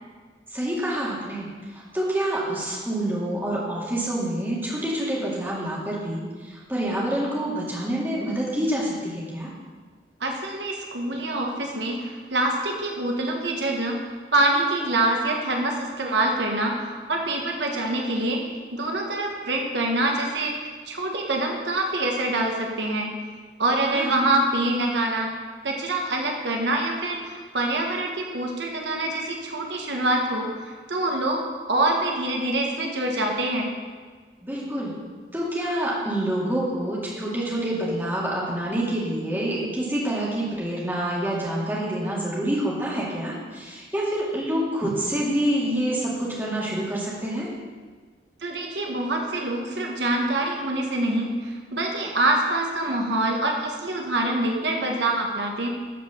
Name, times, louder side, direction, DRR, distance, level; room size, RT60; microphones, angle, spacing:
voice 1, 0.5-9.5 23.9-24.1 34.4-34.9 35.3-47.5, right 1 dB, 10° right, -6 dB, 2.4 m, -27 dB
voice 2, 10.2-14.0 14.3-18.4 18.7-23.1 23.6-25.3 25.6-33.7 48.4-55.7, right 2 dB, 80° right, 1 dB, 1.4 m, -25 dB
12.5 x 5.2 x 7.1 m, 1.5 s
head